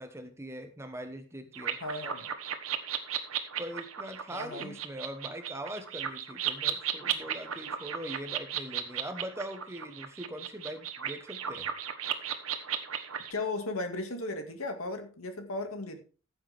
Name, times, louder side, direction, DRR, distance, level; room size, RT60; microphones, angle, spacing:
voice 1, 0.0-1.8 3.6-11.7, right 1 dB, 15° right, 7 dB, 1.2 m, -41 dB
sound 1, 1.5-13.3, right 9 dB, 85° right, 1.4 m, -35 dB
voice 2, 1.8-2.3 4.3-4.8 13.3-16.0, left 2 dB, 85° left, 6 dB, 2.2 m, -36 dB
15.0 x 7.8 x 3.6 m, 0.36 s
head